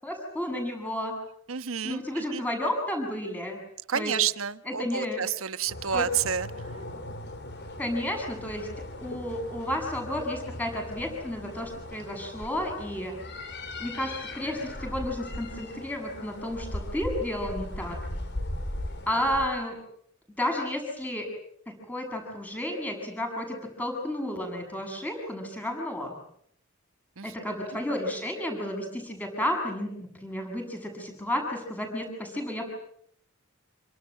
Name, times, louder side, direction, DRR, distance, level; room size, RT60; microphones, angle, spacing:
voice 1, 0.0-1.1 1.8-3.6 3.9-4.1 4.6-5.2 5.9-6.1 7.8-8.7 9.0-13.1 13.8-18.0 19.1-19.8 20.4-21.3 21.7-26.1 27.2-32.7, left 1 dB, 5° left, 3 dB, 7.6 m, -32 dB
voice 2, 1.5-2.4 3.9-6.5 27.2-27.3, right 8 dB, 75° right, 12 dB, 1.2 m, -29 dB
sound 1, 5.7-19.5, left 1 dB, 55° left, 4.0 m, -38 dB
28.0 x 26.0 x 7.7 m, 0.68 s
head